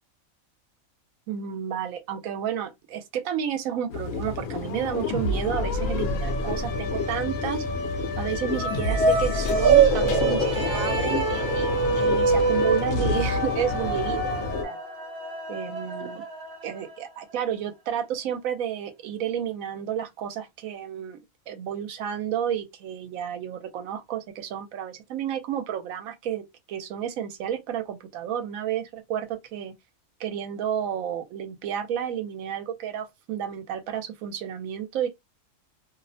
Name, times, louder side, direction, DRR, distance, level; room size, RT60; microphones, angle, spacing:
voice 1, 1.3-7.6 8.2-14.8 15.5-16.2 16.6-21.2 21.5-29.7 30.2-35.1, right 9 dB, 80° right, 1.0 m, -31 dB
sound 1, 3.9-14.6, left 3 dB, 80° left, 1.0 m, -28 dB
sound 2, 8.5-17.0, right 5 dB, 55° right, 1.0 m, -25 dB
2.7 x 2.0 x 2.6 m
omnidirectional pair, 1.4 m